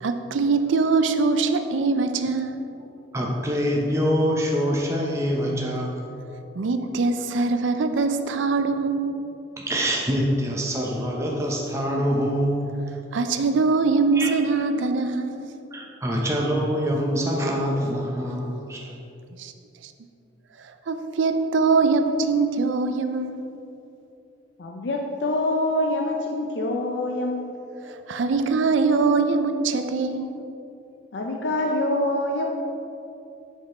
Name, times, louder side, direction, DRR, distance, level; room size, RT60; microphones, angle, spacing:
voice 1, 0.0-2.6 6.6-9.2 13.1-15.5 19.4-19.5 19.8-19.9 20.6-23.4 27.8-30.4, right 4 dB, 90° right, 8 dB, 0.5 m, -23 dB
voice 2, 3.1-6.0 9.6-12.7 14.1-14.3 15.7-18.9, equal, 15° right, -2 dB, 0.7 m, -25 dB
voice 3, 24.6-27.6 31.1-32.5, left 1 dB, 70° left, 1 dB, 0.5 m, -25 dB
5.9 x 5.5 x 4.3 m, 2.8 s
head